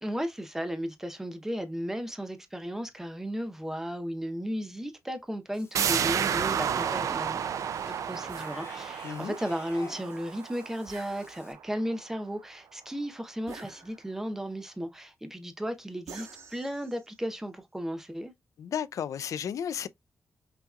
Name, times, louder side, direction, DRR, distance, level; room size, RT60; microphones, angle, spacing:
voice 1, 0.0-7.4 7.9-18.3, equal, 5° right, 0.7 m, -35 dB
Cat / Bathtub (filling or washing), 5.5-11.5, left 4 dB, 45° left, 0.9 m, -53 dB
sound 1, 5.7-11.2 11.6-11.7, right 8 dB, 75° right, 0.4 m, -31 dB
sound 2, 8.3-8.6 10.9-11.7 13.5-14.3 16.1-17.2, right 4 dB, 90° right, 1.7 m, -48 dB
voice 2, 9.0-9.4 18.6-19.9, left 8 dB, 75° left, 0.3 m, -33 dB
5.7 x 2.8 x 2.3 m
wide cardioid pair, 155°, 6 cm